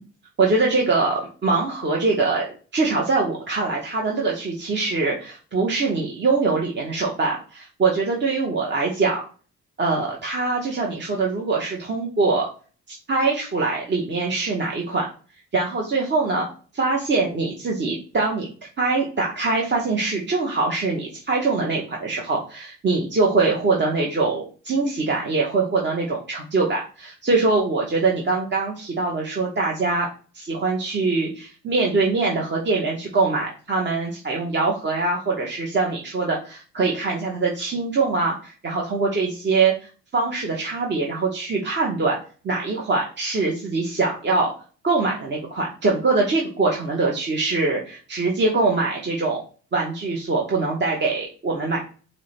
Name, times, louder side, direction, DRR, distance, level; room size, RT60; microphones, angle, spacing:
voice 1, 0.4-9.2 9.8-12.5 13.1-15.1 15.5-16.5 16.7-18.5 18.8-30.1 30.3-42.2 42.4-44.5 44.8-49.4 49.7-51.9, right 3 dB, 35° right, -1 dB, 0.9 m, -23 dB
4.4 x 2.2 x 4.1 m, 0.38 s
cardioid pair, 90°, 30 cm